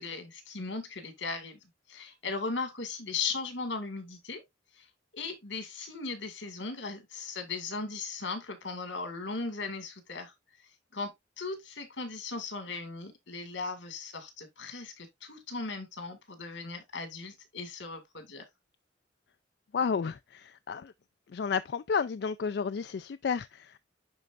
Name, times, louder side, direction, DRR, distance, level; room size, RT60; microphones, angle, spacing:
voice 1, 0.0-4.4 4.7-4.9 5.1-10.3 10.9-18.5, left 4 dB, 80° left, 2.1 m, -37 dB
voice 2, 19.7-20.9 21.3-23.8, left 6 dB, 60° left, 0.4 m, -32 dB
11.0 x 4.4 x 2.5 m
head